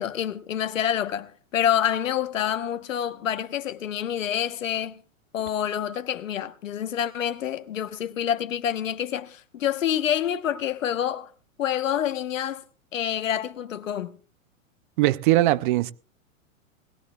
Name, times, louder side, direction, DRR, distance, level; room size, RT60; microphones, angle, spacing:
voice 1, 0.0-5.0 5.3-11.3 11.6-12.6 12.9-14.2, left 10 dB, 70° left, 1.2 m, -27 dB
voice 2, 15.0-15.9, right 16 dB, 40° right, 0.6 m, -20 dB
20.0 x 17.0 x 2.4 m
hypercardioid pair, 115°, 40 cm